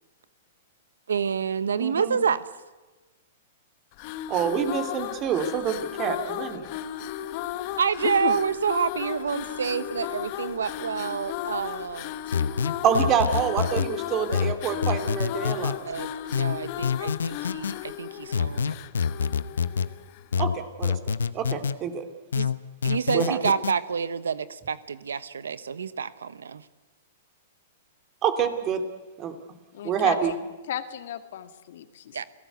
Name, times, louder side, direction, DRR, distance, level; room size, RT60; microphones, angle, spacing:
voice 1, 1.1-2.4 7.8-12.1 15.8-18.7 22.3-22.5 22.8-26.6 32.1-32.2, right 6 dB, 85° right, 16 dB, 1.0 m, -28 dB
voice 2, 1.8-2.2 4.3-6.7 12.8-15.8 20.4-21.0 21.3-22.0 23.1-23.4 28.2-28.8 29.2-29.3 29.8-30.3, right 8 dB, 30° right, 7 dB, 2.9 m, -26 dB
sound 1, 3.9-20.4, left 12 dB, 45° left, 1.2 m, -35 dB
voice 3, 8.0-8.4 29.7-30.3 30.7-32.0, left 11 dB, 65° left, 9 dB, 1.9 m, -32 dB
sound 2, 12.3-13.9 14.3-15.8 16.3-17.7 18.3-19.9 20.3-21.8 22.3-23.7, left 6 dB, 90° left, 1.0 m, -26 dB
30.0 x 18.0 x 8.2 m, 1.2 s
hypercardioid pair, 125°, 0 cm